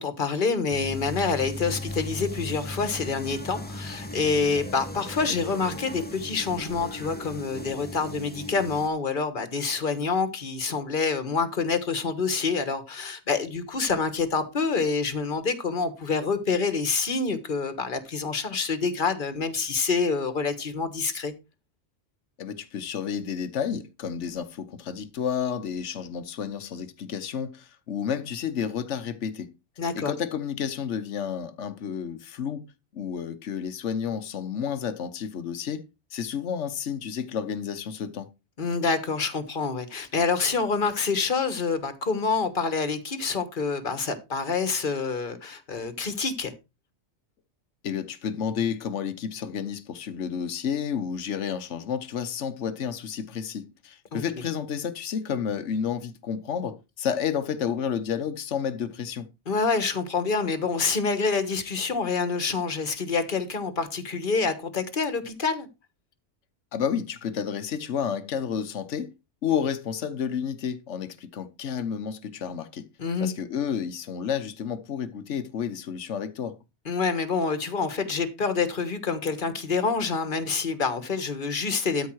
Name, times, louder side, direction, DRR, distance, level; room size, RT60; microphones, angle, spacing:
voice 1, 0.0-21.3 29.8-30.1 38.6-46.5 54.1-54.2 59.5-65.7 73.0-73.3 76.8-82.1, left 4 dB, 45° left, 1.6 m, -27 dB
sound 1, 0.7-8.9, left 2 dB, 10° left, 1.2 m, -37 dB
voice 2, 22.4-29.5 29.9-32.7 32.9-38.3 47.8-59.3 66.7-69.1 69.4-72.9 73.2-76.6, left 7 dB, 80° left, 1.2 m, -31 dB
13.0 x 5.3 x 4.7 m
omnidirectional pair, 1.2 m